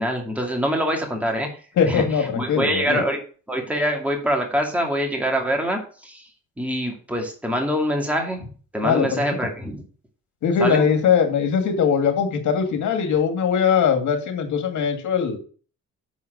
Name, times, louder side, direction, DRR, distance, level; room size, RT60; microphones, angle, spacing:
voice 1, 0.0-1.5 1.9-3.2 3.5-6.3 6.6-8.5 8.7-9.8 10.6-10.9, equal, 5° right, 1 dB, 2.5 m, -24 dB
voice 2, 1.8-3.0 8.8-9.2 10.4-15.4, left 6 dB, 70° left, 6 dB, 2.1 m, -21 dB
7.2 x 4.7 x 6.4 m, 0.39 s
cardioid pair, 90°, 30 cm